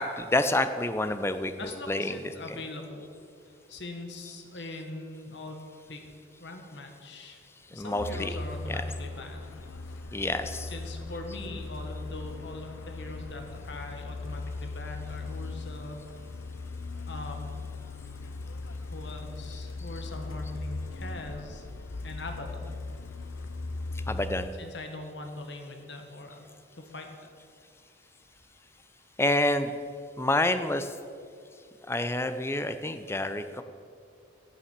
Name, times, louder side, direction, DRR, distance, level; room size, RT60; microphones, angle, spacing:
voice 1, 0.0-2.6 7.7-8.4 8.7-8.8 10.1-10.7 24.1-24.5 29.2-29.7 30.2-30.9 31.9-33.6, left 1 dB, 15° left, 10 dB, 0.5 m, -28 dB
voice 2, 1.6-3.1 3.7-5.6 5.9-6.1 6.4-9.5 10.6-16.0 17.1-17.7 18.9-21.6 22.0-22.8 24.6-26.4 26.8-27.3, left 2 dB, 60° left, 4 dB, 1.5 m, -41 dB
Truck, 8.0-24.5, left 3 dB, 90° left, 0.7 m, -38 dB
11.0 x 7.1 x 7.3 m, 2.3 s
head